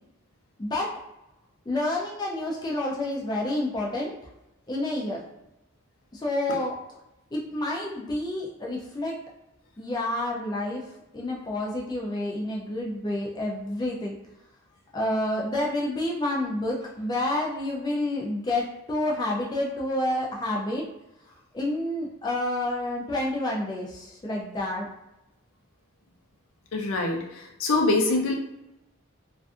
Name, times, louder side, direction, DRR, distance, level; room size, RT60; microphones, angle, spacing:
voice 1, 0.6-0.9 1.7-4.1 4.7-5.2 6.1-6.7 7.3-9.1 9.8-14.1 14.9-20.8 21.3-24.9, left 1 dB, 20° left, -3 dB, 0.3 m, -29 dB
voice 2, 26.7-28.4, left 2 dB, 80° left, 1 dB, 0.5 m, -24 dB
2.5 x 2.3 x 2.4 m, 0.92 s
head